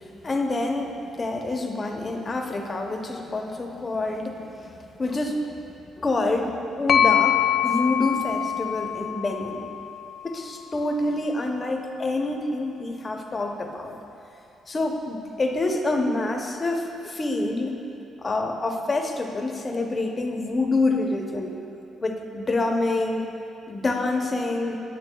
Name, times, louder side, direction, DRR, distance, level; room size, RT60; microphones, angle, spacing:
voice 1, 0.2-4.7 5.0-5.4 6.0-9.6 10.2-14.0 14.7-17.9 18.2-21.6 22.0-23.3 23.7-24.8, left 2 dB, 30° left, 3 dB, 0.7 m, -27 dB
sound 1, 6.9-10.6, left 9 dB, 65° left, 0.3 m, -24 dB
8.8 x 8.6 x 2.3 m, 2.8 s
cardioid pair, 90°, 0 cm